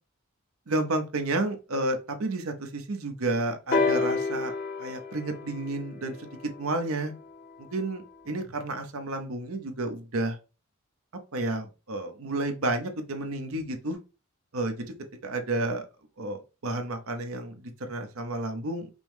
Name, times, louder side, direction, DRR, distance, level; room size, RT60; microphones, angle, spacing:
voice 1, 0.7-6.3 6.6-7.1 7.6-10.4 11.3-14.0 14.5-14.9 15.2-15.9 16.2-18.9, right 2 dB, 75° right, 6 dB, 0.8 m, -31 dB
sound 1, 3.7-7.5 8.5-8.6, left 4 dB, 40° left, 0.6 m, -30 dB
5.2 x 2.1 x 3.1 m, 0.31 s
head